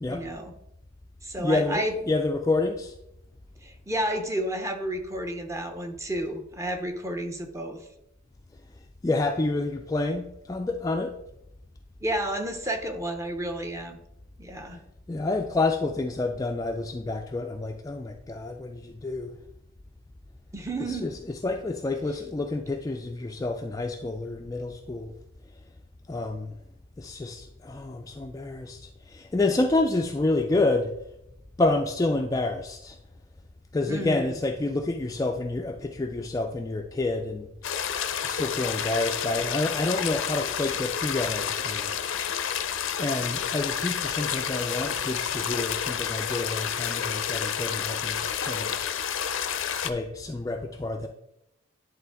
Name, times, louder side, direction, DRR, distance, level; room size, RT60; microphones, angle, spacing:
voice 1, 0.1-0.5 1.2-1.9 3.6-7.9 12.0-14.0 14.4-14.8 20.5-21.1 33.9-34.3, right 1 dB, 15° right, 5 dB, 0.7 m, -31 dB
voice 2, 1.4-2.9 9.0-11.2 15.1-19.3 20.8-25.1 26.1-26.6 27.0-30.9 31.6-33.0 33.7-37.5 38.2-42.0 43.0-48.9 49.8-51.1, left 2 dB, 15° left, 4 dB, 0.3 m, -28 dB
sound 1, 37.6-49.9, left 8 dB, 75° left, 0.5 m, -30 dB
10.5 x 3.7 x 3.5 m, 0.85 s
head